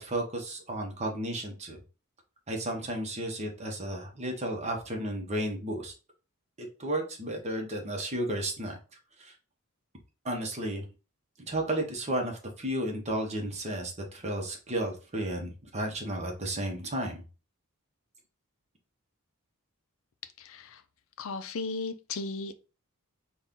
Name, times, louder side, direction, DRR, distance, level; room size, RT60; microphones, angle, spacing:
voice 1, 0.0-1.8 2.5-5.9 6.6-8.8 9.2-9.3 10.2-10.8 11.5-17.2, right 1 dB, 30° right, 0.9 m, -33 dB
voice 2, 20.4-20.8 21.2-22.6, left 3 dB, 60° left, 0.4 m, -36 dB
4.1 x 2.4 x 3.6 m
head